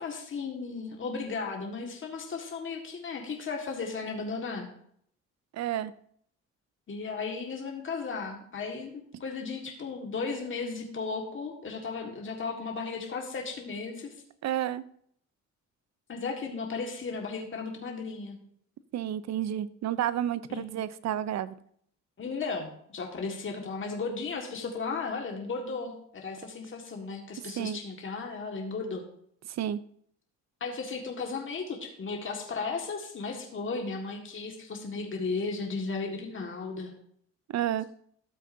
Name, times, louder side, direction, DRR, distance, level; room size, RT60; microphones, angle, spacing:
voice 1, 0.0-4.7 6.9-14.1 16.1-18.4 20.5-20.7 22.2-29.0 30.6-36.9, left 4 dB, 40° left, 1 dB, 1.8 m, -35 dB
voice 2, 5.5-5.9 14.4-14.8 18.9-21.6 27.6-27.8 29.5-29.8 37.5-37.9, right 11 dB, 60° right, 16 dB, 0.6 m, -30 dB
13.0 x 7.6 x 2.7 m, 0.65 s
cardioid pair, 90°, 30 cm